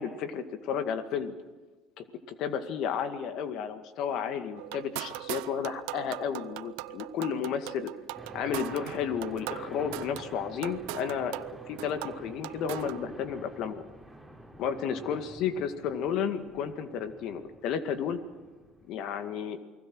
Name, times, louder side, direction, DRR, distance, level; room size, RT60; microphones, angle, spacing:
voice 1, 0.0-1.3 2.0-2.1 2.4-7.9 8.3-13.8 14.6-18.2 18.9-19.6, left 7 dB, 65° left, 9 dB, 2.1 m, -32 dB
sound 1, 4.6-13.0, right 20 dB, 75° right, 0.6 m, -40 dB
sound 2, 8.2-18.9, right 1 dB, ahead, 4.6 m, -48 dB
29.0 x 20.0 x 6.3 m, 1.3 s
hypercardioid pair, 80°, 0 cm